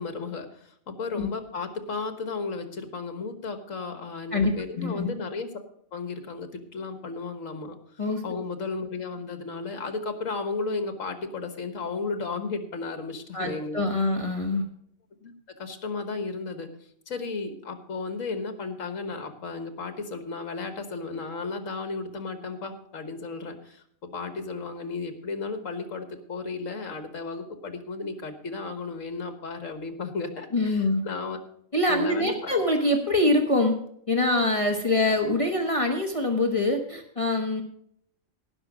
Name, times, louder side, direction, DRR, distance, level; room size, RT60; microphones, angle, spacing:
voice 1, 0.0-5.5 5.9-7.8 8.2-13.8 15.2-15.3 15.6-16.7 17.1-31.4 31.9-32.5, left 4 dB, 70° left, 8 dB, 1.8 m, -34 dB
voice 2, 4.3-5.1 8.0-8.2 13.3-14.6 30.5-31.0 31.7-33.8 34.1-37.6, left 2 dB, 25° left, 3 dB, 1.3 m, -24 dB
17.5 x 6.2 x 5.0 m, 0.68 s
omnidirectional pair, 1.4 m